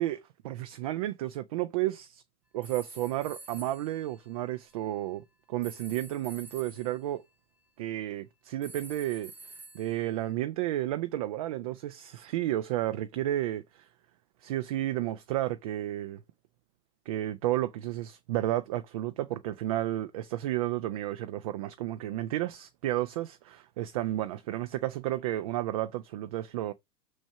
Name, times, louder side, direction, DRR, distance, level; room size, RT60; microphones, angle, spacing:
voice 1, 0.0-2.2 2.5-7.2 7.8-9.3 9.7-13.9 14.4-16.2 17.1-26.7, right 14 dB, 25° right, 0.4 m, -32 dB
sound 1, 2.6-4.9 5.6-7.0 8.6-10.3, right 3 dB, 5° right, 1.0 m, -49 dB
6.2 x 6.2 x 5.7 m
figure-of-eight pair, 105°, 46 cm